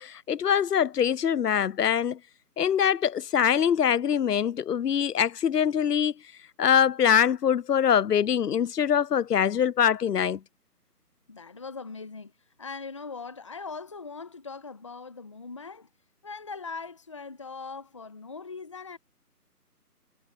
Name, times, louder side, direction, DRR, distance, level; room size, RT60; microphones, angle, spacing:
voice 1, 0.0-2.2 2.6-6.1 6.6-10.4, left 8 dB, 75° left, 0.6 m, -23 dB
voice 2, 11.3-12.3 12.6-15.9 16.2-19.0, left 4 dB, 20° left, 1.3 m, -40 dB
figure-of-eight pair, 165°, 48 cm